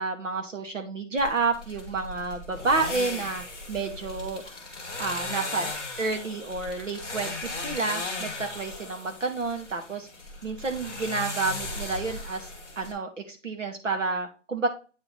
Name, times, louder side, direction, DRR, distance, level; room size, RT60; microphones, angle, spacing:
voice 1, 0.0-4.4 5.0-5.7 6.0-10.1 10.4-12.5 12.8-14.7, right 3 dB, 80° right, 4 dB, 2.0 m, -30 dB
sound 1, 1.2-12.9, left 2 dB, 5° right, 0.6 m, -37 dB
8.6 x 3.3 x 4.2 m, 0.34 s
hypercardioid pair, 165°, 37 cm